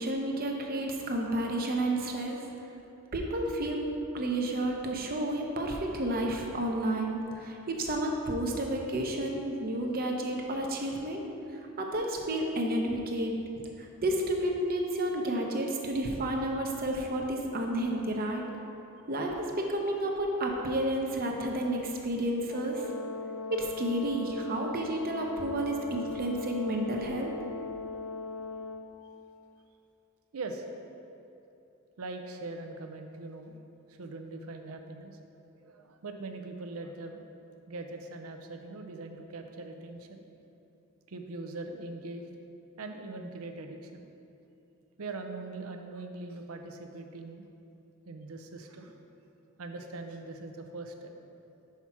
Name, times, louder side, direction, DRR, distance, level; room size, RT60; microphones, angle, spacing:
voice 1, 0.0-2.5 3.1-3.8 4.1-11.2 11.8-13.3 13.8-18.4 19.1-22.8 23.5-27.3, right 1 dB, 45° right, 1 dB, 0.7 m, -31 dB
Brass instrument, 22.5-28.9, left 4 dB, 75° left, 0.5 m, -39 dB
voice 2, 30.3-30.7 32.0-33.6 33.9-35.2 35.6-37.2 37.7-40.2 41.1-42.3 42.8-44.1 45.0-47.5 48.1-48.9 49.6-51.1, right 2 dB, 85° right, 5 dB, 0.6 m, -41 dB
5.8 x 4.6 x 5.8 m, 2.8 s
head